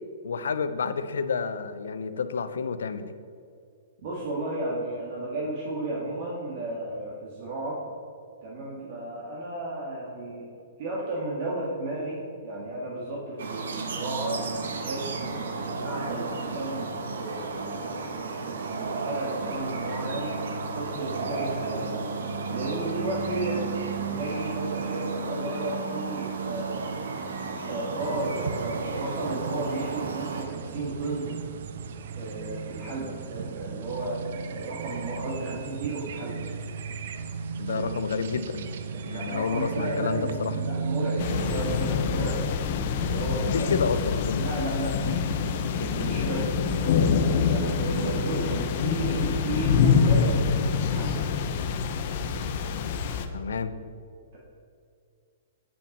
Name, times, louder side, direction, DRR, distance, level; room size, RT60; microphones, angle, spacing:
voice 1, 0.2-3.1 37.6-38.6 39.0-40.5 43.5-44.4 53.3-53.7, left 5 dB, 90° left, 11 dB, 0.6 m, -29 dB
voice 2, 4.0-7.8 8.4-10.5 10.8-14.4 14.8-20.3 20.7-22.0 22.5-23.6 24.1-26.9 27.6-31.4 32.2-36.4 37.7-37.9 39.1-43.9 44.4-45.4 45.7-46.5 47.5-50.5 50.8-51.2, right 2 dB, 50° right, -5 dB, 1.8 m, -33 dB
sound 1, 13.4-30.4, right 4 dB, 85° right, 1.0 m, -33 dB
sound 2, 28.0-41.8, right 5 dB, 65° right, 0.5 m, -35 dB
sound 3, 41.2-53.3, left 6 dB, 45° left, 0.7 m, -25 dB
8.7 x 5.7 x 5.3 m, 2.3 s
hypercardioid pair, 155°, 0 cm